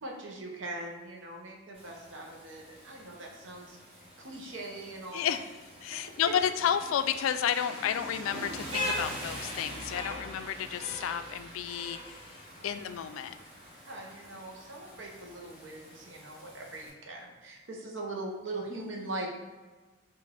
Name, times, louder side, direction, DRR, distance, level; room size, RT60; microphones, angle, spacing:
voice 1, 0.0-3.8 4.2-5.3 6.3-6.4 12.5-12.8 13.9-19.3, right 2 dB, 70° right, 0 dB, 0.9 m, -41 dB
Rain, 1.7-16.9, left 1 dB, 30° right, 1.4 m, -42 dB
voice 2, 5.1-5.4 5.8-13.3, left 9 dB, 90° left, 11 dB, 0.3 m, -31 dB
4.7 x 2.5 x 3.4 m, 1.3 s
head